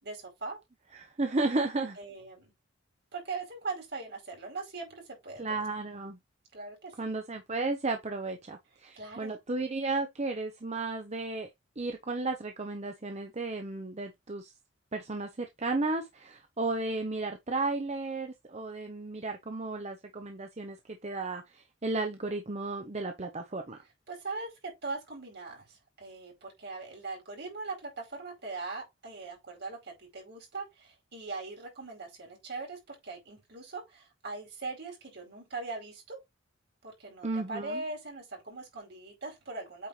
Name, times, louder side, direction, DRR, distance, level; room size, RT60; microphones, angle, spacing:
voice 1, 0.0-0.6 2.0-2.5 3.1-5.6 6.5-6.9 8.9-9.4 24.1-36.2 36.8-39.9, right 3 dB, 55° right, 4.6 m, -40 dB
voice 2, 0.9-2.0 5.4-6.2 7.0-11.5 11.8-14.5 14.9-23.8 37.2-37.8, right 3 dB, 35° right, 0.8 m, -34 dB
8.5 x 4.4 x 3.2 m
head